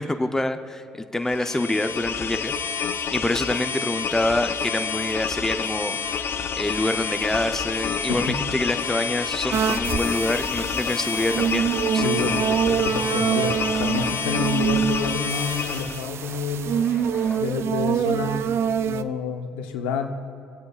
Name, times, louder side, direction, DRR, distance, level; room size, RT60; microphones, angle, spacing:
voice 1, 0.0-2.5 3.1-6.0 6.6-12.3, left 1 dB, 10° left, 8 dB, 0.6 m, -26 dB
sound 1, 1.3-16.1, left 7 dB, 50° left, 0.6 m, -28 dB
sound 2, 4.6-17.4, left 1 dB, 30° left, 2.7 m, -43 dB
sound 3, 9.5-19.0, right 8 dB, 60° right, 0.4 m, -25 dB
voice 2, 12.0-13.5 13.8-16.8 17.4-18.6 18.8-20.1, left 5 dB, 90° left, 5 dB, 0.8 m, -29 dB
24.0 x 8.4 x 2.4 m, 2.5 s
supercardioid pair, 60°, 5 cm